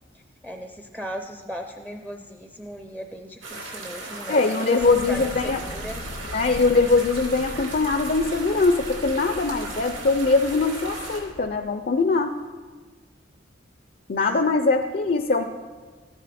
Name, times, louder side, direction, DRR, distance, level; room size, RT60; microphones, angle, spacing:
voice 1, 0.1-6.0, equal, 5° right, 5 dB, 0.5 m, -37 dB
sound 1, 3.4-11.2, right 2 dB, 85° right, 2.7 m, -37 dB
voice 2, 4.3-5.6 6.3-12.4 14.1-15.4, left 3 dB, 50° left, 8 dB, 0.5 m, -22 dB
sound 2, 4.8-11.6, left 1 dB, 85° left, 1.0 m, -40 dB
13.5 x 10.5 x 4.2 m, 1.5 s
head